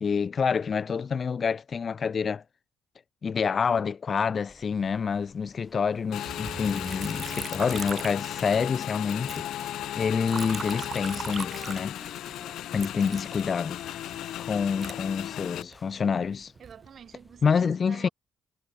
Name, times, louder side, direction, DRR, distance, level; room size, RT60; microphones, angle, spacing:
voice 1, 0.0-2.4 3.2-9.5 10.0-12.0 12.7-13.8 14.4-16.5 17.4-18.1, left 6 dB, 45° left, 0.3 m, -27 dB
sound 1, 4.5-17.4, left 2 dB, 15° left, 2.9 m, -55 dB
Motorcycle / Engine, 6.1-15.6, left 12 dB, 80° left, 1.6 m, -36 dB
Liquid, 6.3-8.8 9.1-12.3 12.8-15.8 16.3-16.9, right 5 dB, 40° right, 0.9 m, -40 dB
voice 2, 16.6-18.1, right 8 dB, 55° right, 2.9 m, -47 dB
cardioid pair, 90°, 0 cm